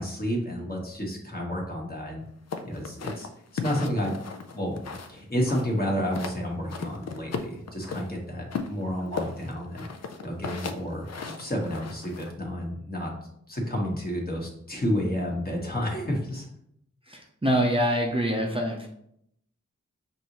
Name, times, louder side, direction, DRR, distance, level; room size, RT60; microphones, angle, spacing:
voice 1, 0.0-2.2 2.6-4.2 4.5-9.9 10.2-13.1 13.5-16.5, equal, 30° left, -1 dB, 1.3 m, -30 dB
sound 1, 2.5-5.2 5.5-6.4 6.7-8.1 8.5-12.3, left 5 dB, 60° left, 0.5 m, -36 dB
voice 2, 17.1-18.9, equal, 20° right, -1 dB, 0.6 m, -25 dB
5.3 x 2.6 x 3.0 m, 0.73 s
cardioid pair, 50°, 29 cm